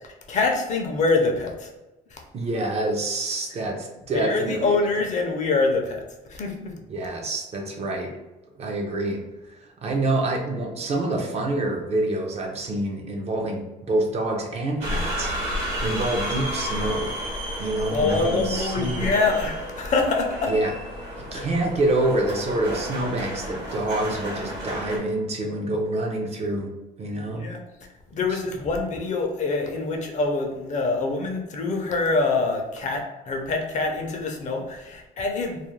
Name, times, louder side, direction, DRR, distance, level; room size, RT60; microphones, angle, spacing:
voice 1, 0.3-1.7 2.1-2.2 4.1-6.0 6.3-6.7 17.9-20.5 21.3-21.5 27.1-27.6 28.1-35.6, left 3 dB, 45° left, 2 dB, 0.5 m, -25 dB
voice 2, 2.3-4.7 6.9-8.2 8.6-9.2 9.6-17.1 17.6-19.1 20.5-20.7 21.2-26.7 27.0-27.5 28.3-28.4, right 2 dB, 40° right, 2 dB, 0.5 m, -27 dB
sound 1, 14.8-25.0, equal, 80° right, 1.0 m, -31 dB
2.3 x 2.1 x 3.1 m, 1.0 s
cardioid pair, 110°, 17 cm